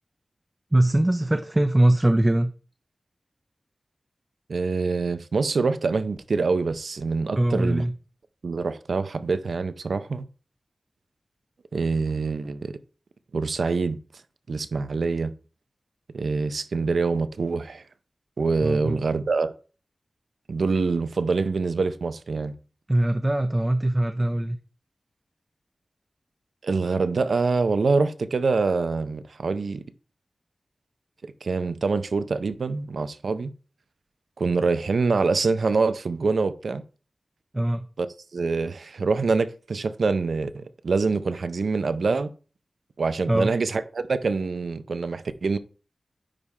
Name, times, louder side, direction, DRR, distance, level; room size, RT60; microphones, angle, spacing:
voice 1, 0.7-2.5 7.3-8.0 18.6-19.0 22.9-24.6 37.5-37.9 43.3-43.5, right 1 dB, 20° right, 0.6 m, -22 dB
voice 2, 4.5-7.8 8.4-10.2 11.7-12.7 13.3-14.0 14.5-15.3 16.1-17.8 18.4-19.5 20.5-22.5 26.6-29.8 31.2-33.5 34.4-36.8 38.0-38.1 38.3-42.3 43.0-45.6, right 4 dB, 85° right, 0.6 m, -25 dB
9.9 x 3.6 x 4.2 m
wide cardioid pair, 75°, 0 cm